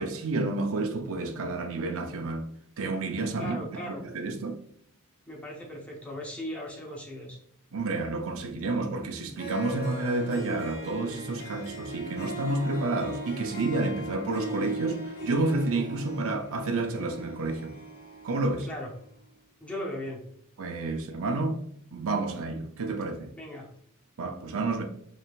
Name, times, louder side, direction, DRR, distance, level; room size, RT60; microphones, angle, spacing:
voice 1, 0.0-2.4 2.8-4.6 7.7-17.7 18.2-18.7 20.6-21.6 21.9-23.3 24.2-24.8, right 2 dB, 65° right, 0.6 m, -30 dB
voice 2, 3.4-4.0 5.3-7.4 18.7-18.9 19.6-20.2 23.4-23.7, equal, 5° left, 0.9 m, -37 dB
Harp, 9.4-18.9, right 1 dB, 45° left, 1.5 m, -38 dB
4.9 x 3.3 x 2.4 m
head